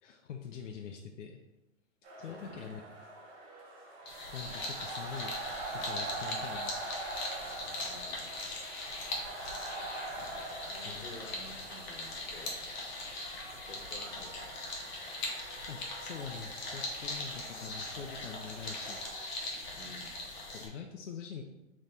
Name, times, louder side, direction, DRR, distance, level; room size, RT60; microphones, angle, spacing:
voice 1, 0.0-1.4 2.2-2.8 4.0-5.3 5.7-6.8 10.8-11.1 15.7-19.6 20.5-21.4, left 7 dB, 65° left, 2 dB, 0.5 m, -44 dB
sound 1, 2.0-19.3, right 2 dB, 50° right, 1.3 m, -44 dB
voice 2, 2.3-2.7 7.8-8.3 10.7-12.6 13.5-14.7 19.7-20.1, left 2 dB, 90° left, 2 dB, 1.2 m, -51 dB
sound 2, 4.1-20.7, left 2 dB, 35° left, 0.9 m, -40 dB
3.4 x 3.1 x 4.0 m, 0.99 s
hypercardioid pair, 155°, 39 cm